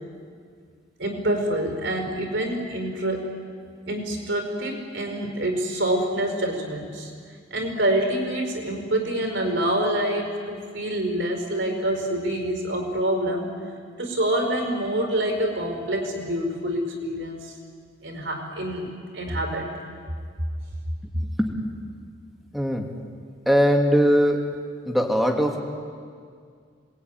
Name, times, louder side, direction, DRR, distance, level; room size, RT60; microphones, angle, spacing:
voice 1, 1.0-3.3 3.9-7.1 7.5-13.5 14.0-17.5 18.0-18.9 19.1-19.7, right 1 dB, 70° right, 4 dB, 5.1 m, -26 dB
voice 2, 21.1-21.5 22.5-22.9 23.5-24.5 24.8-25.6, equal, ahead, 1 dB, 2.6 m, -21 dB
27.5 x 20.5 x 9.6 m, 2.1 s
head